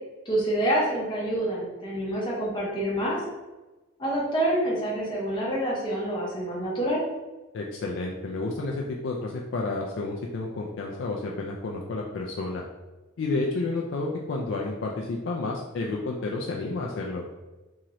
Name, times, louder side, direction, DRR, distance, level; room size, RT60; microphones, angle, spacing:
voice 1, 0.3-3.2 4.0-7.0, right 1 dB, 20° left, -5 dB, 0.7 m, -27 dB
voice 2, 7.5-12.6 13.2-17.2, left 3 dB, 65° left, -1 dB, 0.3 m, -30 dB
3.0 x 2.8 x 2.5 m, 1.1 s
head